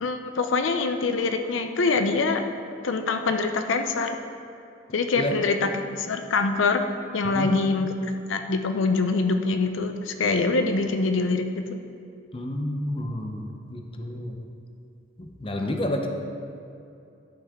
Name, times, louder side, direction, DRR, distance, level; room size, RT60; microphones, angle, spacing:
voice 1, 0.0-2.4 2.8-4.2 4.9-6.9 7.1-7.9 8.3-11.6, left 3 dB, 85° left, 6 dB, 0.5 m, -24 dB
voice 2, 7.2-7.6 12.3-14.4 15.2-16.1, left 1 dB, 30° left, 3 dB, 0.6 m, -30 dB
12.0 x 5.7 x 3.6 m, 2.6 s
head